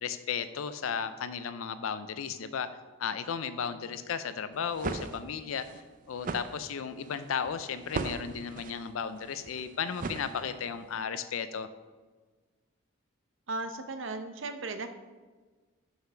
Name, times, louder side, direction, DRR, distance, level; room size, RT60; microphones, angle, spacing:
voice 1, 0.0-2.7 3.0-5.7 6.1-11.7, left 7 dB, 85° left, 12 dB, 0.4 m, -34 dB
sound 1, 4.5-10.8, right 4 dB, 40° right, 0.4 m, -39 dB
voice 2, 13.5-14.9, right 3 dB, 70° right, 8 dB, 0.7 m, -36 dB
5.7 x 5.7 x 5.7 m, 1.4 s
head